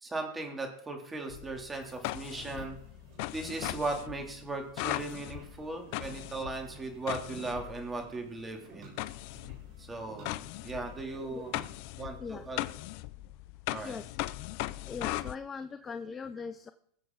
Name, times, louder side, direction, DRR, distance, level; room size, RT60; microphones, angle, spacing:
voice 1, 0.0-2.8 3.3-8.9 9.8-11.5 12.0-12.6 13.7-14.0, right 2 dB, 15° right, 2 dB, 3.2 m, -38 dB
sound 1, 1.2-11.8, right 4 dB, 55° right, 4.6 m, -55 dB
sound 2, 1.3-8.1 9.0-15.4, left 18 dB, 60° left, 0.5 m, -39 dB
voice 2, 13.8-14.2 14.8-16.7, left 5 dB, 25° left, 11 dB, 0.7 m, -40 dB
21.5 x 7.5 x 4.1 m, 0.68 s
hypercardioid pair, 105°, 0 cm